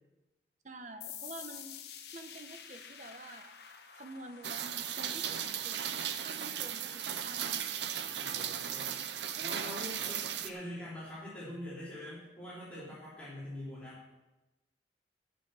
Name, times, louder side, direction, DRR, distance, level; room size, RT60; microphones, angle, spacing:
voice 1, 0.6-1.8 2.1-3.5 4.0-6.0 6.2-7.7 9.4-9.8, right 2 dB, 45° right, 7 dB, 0.9 m, -48 dB
sound 1, 1.0-8.4, left 8 dB, 70° left, 1.0 m, -51 dB
Rain, 4.4-10.5, right 9 dB, 80° right, 0.7 m, -36 dB
voice 2, 8.2-8.9 9.4-14.2, left 1 dB, 5° left, -10 dB, 3.3 m, -44 dB
13.5 x 6.3 x 6.3 m, 1.1 s
head